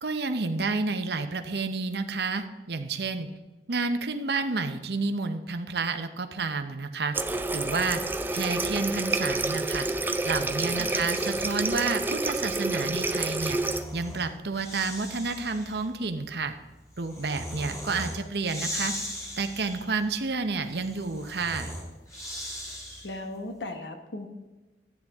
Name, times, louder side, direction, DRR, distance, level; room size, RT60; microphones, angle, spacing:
voice 1, 0.0-3.3 3.7-8.0 8.3-9.9 10.2-13.6 13.9-16.5 17.0-18.9 19.4-21.7, right 4 dB, 65° right, 8 dB, 0.8 m, -30 dB
Water tap faucet, 7.1-13.8, right 2 dB, 10° right, 0.4 m, -29 dB
Breathing, 10.0-11.8 13.1-23.3, equal, 20° left, 2.4 m, -40 dB
voice 2, 10.7-11.1 22.7-24.3, left 2 dB, 80° left, 6 dB, 1.3 m, -38 dB
13.0 x 9.4 x 3.6 m, 1.1 s
head